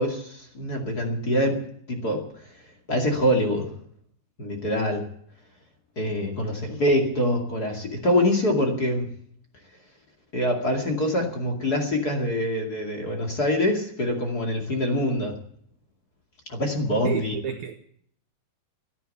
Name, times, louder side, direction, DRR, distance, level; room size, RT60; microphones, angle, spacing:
voice 1, 0.0-1.6 1.9-2.2 2.9-3.7 4.4-5.0 6.0-9.1 10.3-15.3 16.5-17.3, left 1 dB, 30° left, 2.3 m, -24 dB
voice 2, 17.0-17.7, right 8 dB, 70° right, 1.8 m, -30 dB
14.0 x 11.0 x 8.4 m
omnidirectional pair, 4.4 m